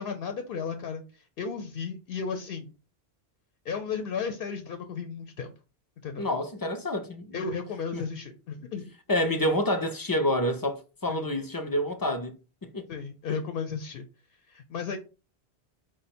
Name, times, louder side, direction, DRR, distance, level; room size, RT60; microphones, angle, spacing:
voice 1, 0.0-2.7 3.6-5.5 6.0-6.3 7.3-8.9 11.1-11.3 12.9-14.1 14.5-15.0, left 5 dB, 65° left, 0.8 m, -34 dB
voice 2, 6.2-7.4 7.9-8.0 9.1-12.3 12.6-12.9 13.3-13.4, left 1 dB, 40° left, 0.3 m, -28 dB
4.9 x 2.1 x 4.2 m
omnidirectional pair, 1.1 m